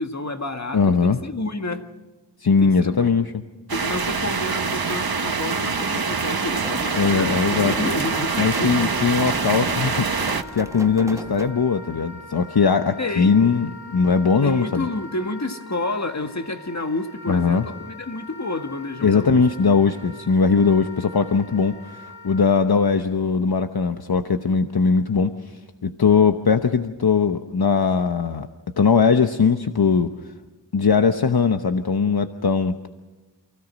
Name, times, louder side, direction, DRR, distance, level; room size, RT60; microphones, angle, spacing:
voice 1, 0.0-1.9 2.6-3.1 3.7-9.1 13.0-13.4 14.4-19.4, left 2 dB, 40° left, 1.7 m, -30 dB
voice 2, 0.7-1.2 2.4-3.3 7.0-7.7 8.4-14.9 17.3-17.7 19.0-28.5 28.8-30.1 30.7-32.9, left 5 dB, 60° left, 1.0 m, -20 dB
sound 1, 3.7-10.4, right 4 dB, 55° right, 1.3 m, -25 dB
sound 2, 6.5-11.5, right 1 dB, 5° right, 1.1 m, -37 dB
Wind instrument woodwind instrument, 7.4-22.4, left 2 dB, 75° left, 7.7 m, -42 dB
28.5 x 16.5 x 6.3 m
wide cardioid pair, 70°, 43 cm